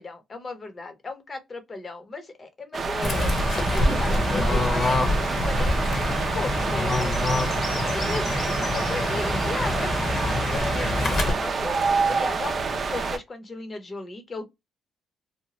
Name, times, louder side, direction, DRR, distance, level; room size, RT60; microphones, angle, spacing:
voice 1, 0.0-3.4 3.7-7.2 7.9-9.9 10.5-11.8 12.1-14.5, left 3 dB, 35° left, 0.9 m, -36 dB
sound 1, 2.7-13.2, right 4 dB, 45° right, 0.6 m, -28 dB
Fowl / Bird, 3.0-11.3, left 2 dB, 50° left, 1.1 m, -25 dB
2.8 x 2.2 x 2.9 m
cardioid pair, 90°, 0 cm